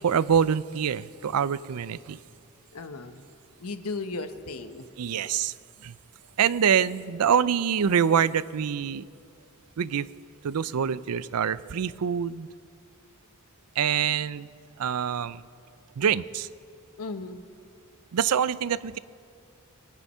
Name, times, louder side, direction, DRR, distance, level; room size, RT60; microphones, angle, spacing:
voice 1, 0.0-2.2 5.0-5.5 5.8-5.9 6.4-9.0 9.8-10.1 10.4-12.5 13.8-14.5 14.8-15.4 16.0-16.5 18.1-19.0, right 8 dB, 85° right, 18 dB, 0.4 m, -25 dB
voice 2, 2.7-3.2 3.6-5.3 17.0-17.5, left 3 dB, 80° left, 9 dB, 1.0 m, -36 dB
23.5 x 9.9 x 5.5 m, 2.3 s
head